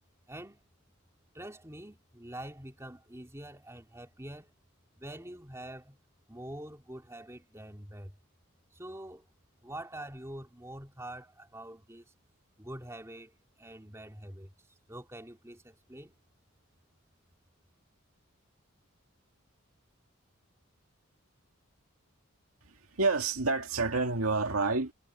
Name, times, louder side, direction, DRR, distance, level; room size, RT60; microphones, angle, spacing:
voice 1, 0.3-0.6 1.3-4.5 4.9-6.0 6.3-8.2 8.7-9.3 9.6-12.1 12.6-16.2, right 1 dB, 15° right, 3.0 m, -45 dB
voice 2, 22.7-24.9, right 3 dB, 75° right, 2.2 m, -29 dB
head